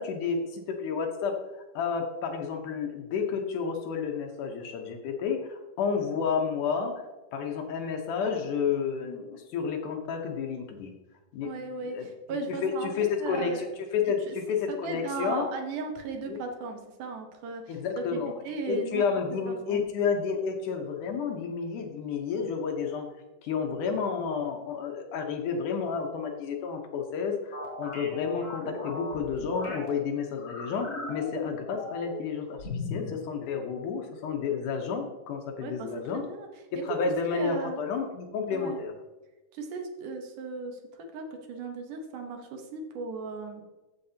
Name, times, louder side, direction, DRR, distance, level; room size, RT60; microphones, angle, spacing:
voice 1, 0.0-7.1 7.3-10.9 11.3-11.5 11.8-12.1 12.5-15.4 16.3-16.4 17.7-23.1 23.4-36.3 36.7-38.9, left 6 dB, 70° left, 3 dB, 2.4 m, -31 dB
voice 2, 11.4-13.7 14.0-14.4 14.7-19.0 19.5-19.8 35.6-35.9 36.3-36.5 37.3-37.8 38.5-38.8 39.5-43.6, right 3 dB, 70° right, 4 dB, 2.5 m, -36 dB
sound 1, 27.5-29.9 30.4-32.3 32.6-33.1, left 3 dB, 25° left, 3.9 m, -37 dB
14.5 x 6.6 x 2.8 m, 1.1 s
omnidirectional pair, 3.9 m